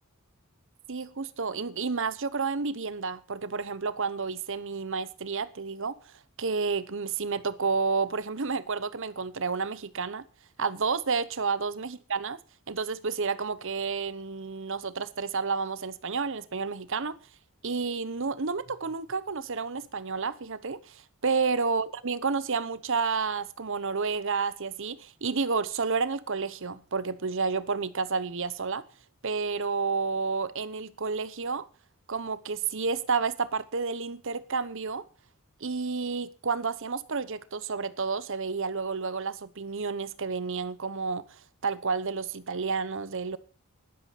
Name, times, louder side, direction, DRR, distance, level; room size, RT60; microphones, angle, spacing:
voice 1, 0.9-5.9 6.4-10.2 10.6-12.4 12.7-17.2 17.6-28.8 29.2-31.6 32.1-35.1 35.6-41.2 41.6-43.4, right 4 dB, 65° right, 1.0 m, -30 dB
13.0 x 11.5 x 5.9 m
head